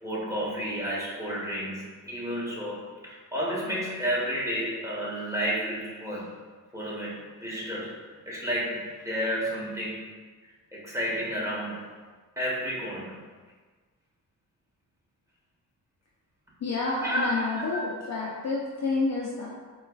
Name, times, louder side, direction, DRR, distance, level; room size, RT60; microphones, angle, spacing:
voice 1, 0.0-6.3 6.7-10.0 10.7-11.8 12.4-13.1 17.0-17.9, equal, 10° right, -6 dB, 1.1 m, -31 dB
voice 2, 16.6-19.5, left 3 dB, 50° left, -4 dB, 0.6 m, -29 dB
4.3 x 2.3 x 2.3 m, 1.4 s
cardioid pair, 65°, 36 cm